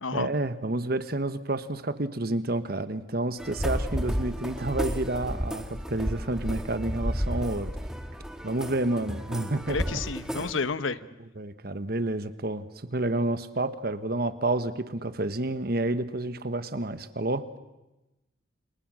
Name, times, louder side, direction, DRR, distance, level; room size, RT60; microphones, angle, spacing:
voice 1, 0.1-7.7 8.4-9.8 10.3-10.4 11.4-17.5, right 2 dB, 50° right, 11 dB, 1.3 m, -29 dB
sound 1, 3.4-10.5, equal, 5° right, 1.7 m, -32 dB
voice 2, 9.7-11.0, left 4 dB, 85° left, 14 dB, 1.0 m, -30 dB
29.0 x 28.0 x 6.4 m, 1.0 s
head